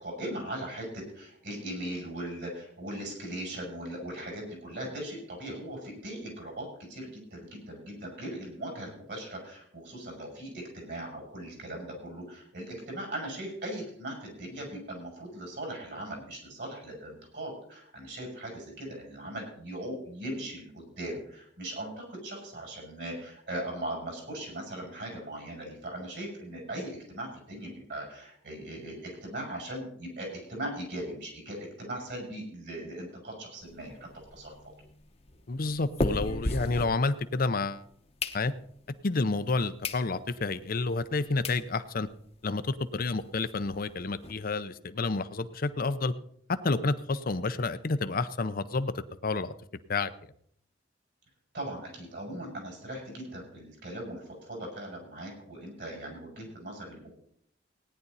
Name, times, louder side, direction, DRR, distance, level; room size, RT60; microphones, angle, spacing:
voice 1, 0.0-34.5 51.5-57.1, right 1 dB, 65° right, 0 dB, 6.8 m, -39 dB
sound 1, 33.6-37.6 37.9-38.9 39.4-39.5 39.8-40.1 40.5-40.6 41.1-41.2 41.4-41.6 42.1-42.2 42.3-42.5 42.8-42.9 43.2-44.3, left 2 dB, 35° left, 1.0 m, -35 dB
voice 2, 35.5-37.8 38.3-38.5 39.0-42.1 42.4-46.1 46.5-48.9 49.2-49.5 49.9-50.1, left 3 dB, 50° left, 12 dB, 0.7 m, -29 dB
17.5 x 10.0 x 4.1 m, 0.66 s
head